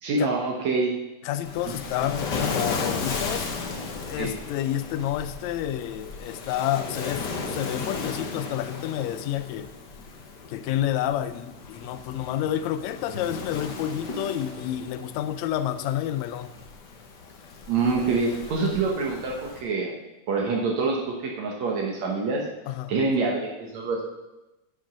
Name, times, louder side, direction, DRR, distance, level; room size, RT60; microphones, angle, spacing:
voice 1, 0.0-1.0 1.7-1.8 4.2-4.3 17.7-19.9 20.3-22.5 22.9-24.0, right 3 dB, 65° right, -1 dB, 2.3 m, -26 dB
voice 2, 1.2-3.5 4.1-9.7 10.5-16.5 22.7-22.9, left 11 dB, 75° left, 13 dB, 1.8 m, -29 dB
Waves surf, 1.4-19.6, left 4 dB, 55° left, 1.2 m, -35 dB
10.0 x 7.8 x 6.1 m, 1.0 s
omnidirectional pair, 3.5 m